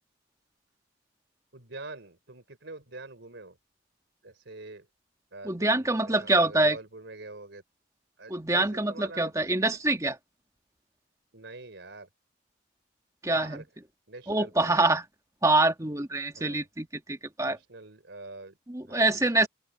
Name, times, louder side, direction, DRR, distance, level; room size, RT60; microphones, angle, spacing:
voice 1, 1.5-3.6 4.2-4.9 5.3-7.6 8.2-9.3 11.3-12.1 13.3-13.7 14.1-14.8 16.4-16.6 17.4-18.6 18.8-19.5, right 2 dB, 70° right, 3.9 m, -45 dB
voice 2, 5.5-6.8 8.3-10.2 13.2-13.6 14.3-15.0 15.4-17.6 18.7-19.5, right 2 dB, 15° right, 1.7 m, -25 dB
open air
head